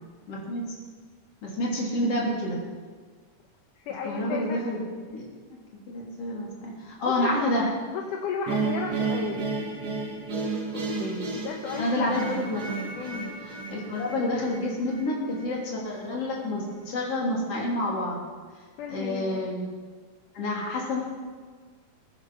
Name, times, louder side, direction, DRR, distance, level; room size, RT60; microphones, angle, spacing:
voice 1, 0.3-0.6 1.4-2.6 4.0-4.8 5.1-5.3 5.9-7.7 10.7-11.4 11.8-12.7 13.7-18.2 18.9-19.7 20.3-21.0, left 1 dB, 45° left, -3 dB, 4.2 m, -29 dB
voice 2, 3.9-4.6 7.0-7.5 7.9-9.5 11.3-12.2 13.0-13.3 18.8-19.4, left 6 dB, 75° left, 1 dB, 2.6 m, -34 dB
sound 1, 8.5-15.6, right 4 dB, 35° right, 2.1 m, -32 dB
21.0 x 10.0 x 5.6 m, 1.5 s
omnidirectional pair, 3.7 m